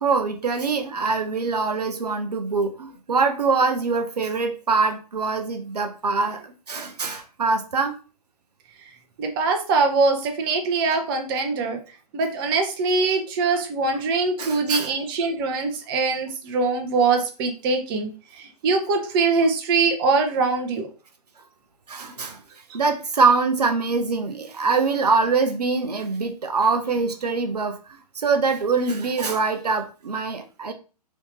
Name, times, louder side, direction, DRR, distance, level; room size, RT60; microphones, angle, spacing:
voice 1, 0.0-7.9 14.4-14.9 21.9-22.4 22.7-27.8 28.2-30.7, right 4 dB, 75° right, 5 dB, 0.6 m, -23 dB
voice 2, 9.2-11.8 12.1-20.9, right 4 dB, 35° right, 4 dB, 0.7 m, -23 dB
3.1 x 2.7 x 3.3 m, 0.34 s
figure-of-eight pair, 120°, 21 cm